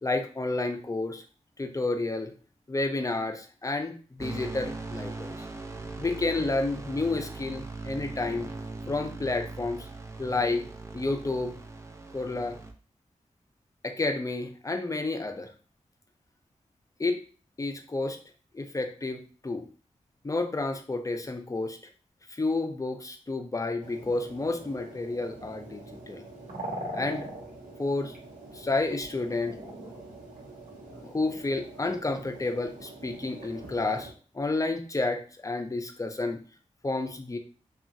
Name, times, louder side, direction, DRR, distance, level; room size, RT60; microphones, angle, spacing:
voice 1, 0.0-1.2 1.6-2.3 2.7-5.4 6.0-8.5 8.9-9.9 10.2-10.7 10.9-11.5 12.1-12.6 13.8-15.5 17.0-17.2 17.6-18.2 18.5-19.7 20.2-21.8 22.4-26.2 26.9-27.3 27.8-28.1 28.5-29.6 31.0-36.4 36.8-37.4, left 2 dB, 25° left, 5 dB, 0.5 m, -30 dB
sound 1, 4.2-12.7, right 3 dB, 20° right, 0.5 m, -40 dB
sound 2, 23.8-34.1, right 1 dB, 85° right, 1.0 m, -43 dB
2.8 x 2.4 x 2.6 m, 0.39 s
cardioid pair, 45°, 13 cm